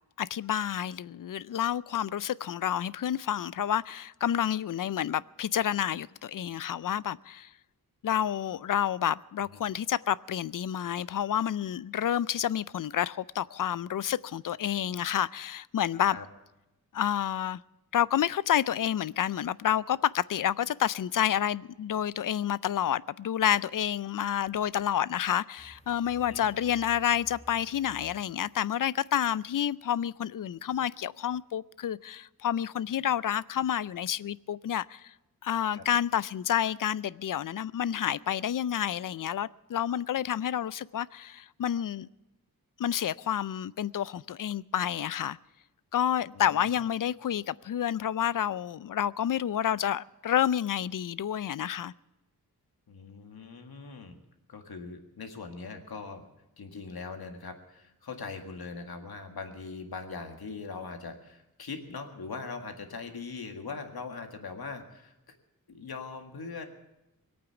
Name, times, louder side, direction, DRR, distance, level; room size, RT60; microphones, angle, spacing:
voice 1, 0.2-7.5 8.0-16.2 16.9-17.6 17.9-35.1 35.4-42.1 42.8-45.4 45.9-51.9, left 10 dB, 60° left, 0.5 m, -29 dB
sound 1, 25.6-29.6 31.2-31.4, equal, 15° left, 2.2 m, -55 dB
voice 2, 46.3-46.8 52.9-54.2 54.5-56.3 56.6-65.1 65.7-66.6, left 4 dB, 75° left, 1.9 m, -41 dB
20.5 x 8.8 x 7.0 m
wide cardioid pair, 75°, 37 cm